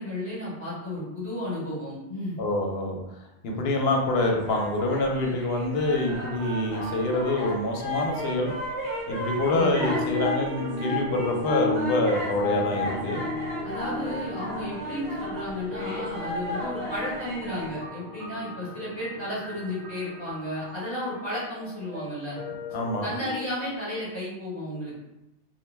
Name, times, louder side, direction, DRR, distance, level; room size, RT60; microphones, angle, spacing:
voice 1, 0.0-2.4 9.5-9.9 13.6-22.4 23.0-25.0, left 1 dB, 25° left, -10 dB, 1.2 m, -33 dB
voice 2, 2.4-8.5 9.1-13.2 22.7-23.1, left 2 dB, 70° left, 1 dB, 0.8 m, -26 dB
sound 1, 4.4-17.8, left 1 dB, 30° right, 0.9 m, -35 dB
sound 2, 5.9-23.5, left 2 dB, 75° right, 1.0 m, -37 dB
2.5 x 2.1 x 3.1 m, 0.91 s
omnidirectional pair, 1.2 m